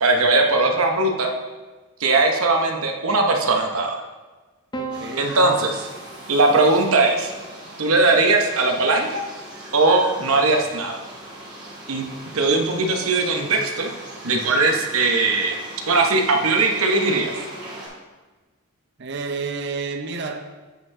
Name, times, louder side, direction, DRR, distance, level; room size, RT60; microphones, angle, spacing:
voice 1, 0.0-1.3 2.0-4.0 5.2-5.9 6.3-7.3 7.8-9.2 9.7-11.0 11.9-12.1 12.3-13.9 14.2-15.6 15.9-17.3, right 3 dB, 80° right, 3 dB, 0.9 m, -19 dB
Piano, 4.7-9.2 10.4-11.1, right 3 dB, 20° left, 0.4 m, -40 dB
voice 2, 4.8-5.4 19.0-20.4, right 4 dB, 50° right, 6 dB, 0.6 m, -30 dB
sound 1, 4.9-17.9, right 1 dB, 20° right, 2.0 m, -39 dB
7.7 x 5.3 x 3.6 m, 1.3 s
head